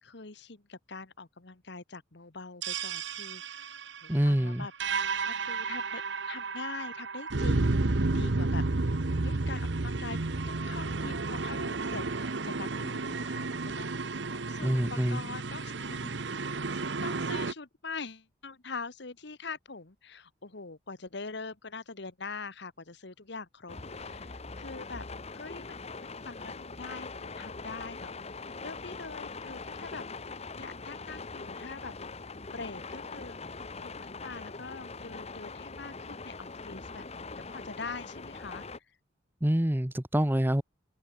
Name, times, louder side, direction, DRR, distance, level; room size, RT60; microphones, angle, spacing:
voice 1, 0.0-3.7 4.0-10.2 10.5-16.2 16.7-28.1 28.6-31.9 32.5-33.4 33.8-38.6, left 4 dB, 65° left, 1.5 m, -44 dB
sound 1, 2.6-17.5, right 3 dB, 65° right, 1.0 m, -32 dB
voice 2, 4.1-4.7 14.6-15.2 39.4-40.6, equal, 10° right, 1.0 m, -26 dB
sound 2, 23.7-38.8, left 4 dB, 35° left, 1.2 m, -42 dB
open air
head